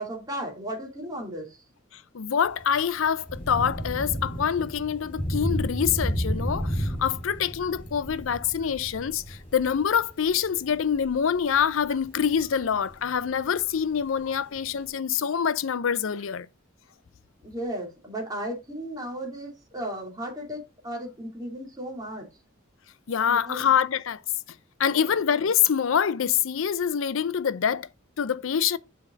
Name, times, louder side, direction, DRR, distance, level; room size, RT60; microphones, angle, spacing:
voice 1, 0.0-1.6 17.4-22.3 23.2-23.6 24.9-25.2, right 1 dB, 20° right, 2.8 m, -35 dB
voice 2, 1.9-16.5 23.1-24.2 24.8-27.9 28.2-28.8, left 8 dB, 80° left, 0.5 m, -25 dB
Thunder / Rain, 2.5-14.9, equal, 30° left, 3.5 m, -34 dB
7.6 x 4.8 x 3.8 m
head